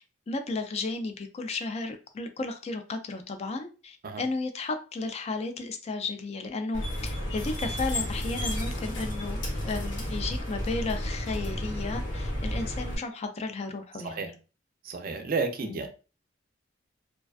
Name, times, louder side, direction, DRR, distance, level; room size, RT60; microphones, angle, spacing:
voice 1, 0.3-14.4 15.6-15.9, left 3 dB, 35° left, 0.4 m, -34 dB
sound 1, 6.7-13.0, left 1 dB, 70° left, 0.9 m, -32 dB
voice 2, 14.9-15.9, right 4 dB, 50° right, 0.4 m, -31 dB
2.4 x 2.2 x 2.3 m
head